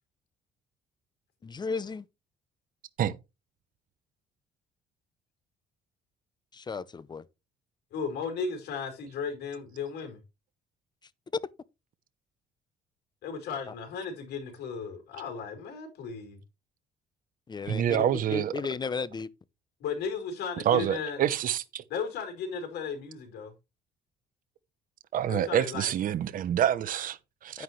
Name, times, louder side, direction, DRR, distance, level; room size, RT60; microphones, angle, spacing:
voice 1, 1.4-2.0 6.5-7.2 13.7-13.8 17.5-19.3 27.5-27.6, left 5 dB, 25° left, 0.8 m, -35 dB
voice 2, 7.9-10.2 13.2-16.4 19.8-21.3 21.9-23.5 25.3-25.9, left 5 dB, 70° left, 4.8 m, -35 dB
voice 3, 17.7-18.5 20.6-21.8 25.1-27.6, right 10 dB, 55° right, 1.0 m, -27 dB
9.6 x 9.6 x 3.2 m
cardioid pair, 110°, 17 cm